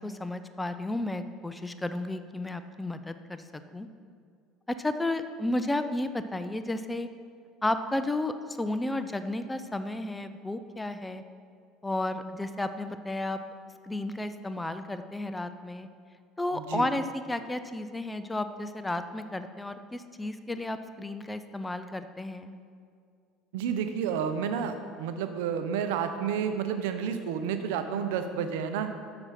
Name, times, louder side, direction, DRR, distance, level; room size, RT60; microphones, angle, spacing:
voice 1, 0.0-3.9 4.7-7.1 7.6-11.2 11.8-13.4 13.8-15.9 16.4-22.5, left 2 dB, 10° left, 10 dB, 0.5 m, -33 dB
voice 2, 16.5-16.9 23.5-28.9, right 7 dB, 80° right, 8 dB, 0.6 m, -30 dB
6.7 x 6.1 x 5.7 m, 2.2 s
supercardioid pair, 90°, 0 cm